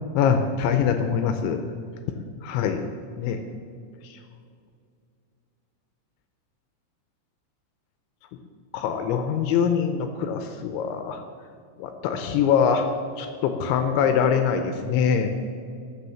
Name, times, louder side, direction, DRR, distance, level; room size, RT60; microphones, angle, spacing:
voice 1, 0.1-1.6 2.4-2.8 3.2-3.4 8.7-11.2 11.8-12.8 13.2-15.3, left 7 dB, 80° left, 7 dB, 2.8 m, -23 dB
13.5 x 6.2 x 7.5 m, 2.3 s
omnidirectional pair, 5.7 m